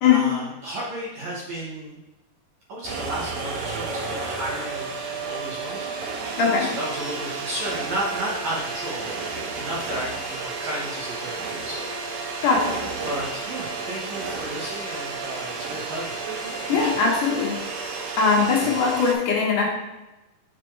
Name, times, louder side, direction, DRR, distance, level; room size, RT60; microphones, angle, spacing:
voice 1, 0.0-2.0 2.7-5.9 6.6-9.1 9.5-11.9 13.0-16.2 16.7-17.1 18.6-18.9, right 1 dB, 60° right, -5 dB, 2.1 m, -33 dB
sound 1, 2.8-19.1, right 4 dB, 80° right, 2.5 m, -32 dB
voice 2, 12.4-12.8 16.7-17.6 18.2-19.7, left 5 dB, 70° left, -3 dB, 2.5 m, -20 dB
6.3 x 4.1 x 4.5 m, 1.0 s
omnidirectional pair, 4.2 m